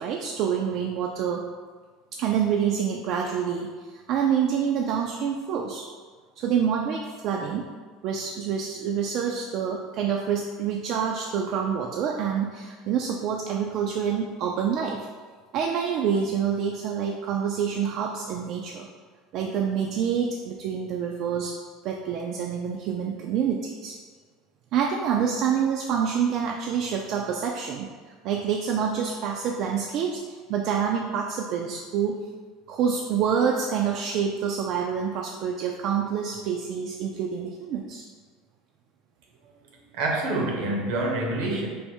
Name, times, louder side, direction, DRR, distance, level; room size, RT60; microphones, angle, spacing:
voice 1, 0.0-1.5 2.1-5.9 6.4-7.7 8.0-15.1 15.5-18.9 19.3-21.6 21.8-24.0 24.7-27.9 28.2-32.3 32.7-38.1, right 7 dB, 60° right, 0 dB, 0.3 m, -27 dB
voice 2, 39.9-41.7, right 2 dB, 75° right, 0 dB, 0.7 m, -26 dB
3.4 x 2.0 x 4.3 m, 1.5 s
supercardioid pair, 95°, 0 cm